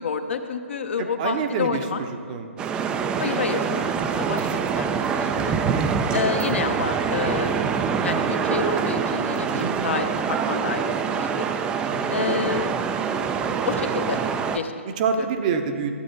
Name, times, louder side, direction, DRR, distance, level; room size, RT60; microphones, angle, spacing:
voice 1, 0.0-2.0 3.2-5.5 6.1-7.7 8.0-11.4 12.1-12.8 13.6-14.2 14.5-14.7 15.2-15.3, left 5 dB, 60° left, 7 dB, 0.7 m, -29 dB
voice 2, 1.0-2.5 5.7-6.4 9.5-9.8 11.9-12.4 14.9-15.9, right 6 dB, 35° right, 6 dB, 0.7 m, -28 dB
sound 1, 2.6-14.6, right 6 dB, 10° right, 0.3 m, -25 dB
12.5 x 8.4 x 3.8 m, 2.2 s
figure-of-eight pair, 130°, 7 cm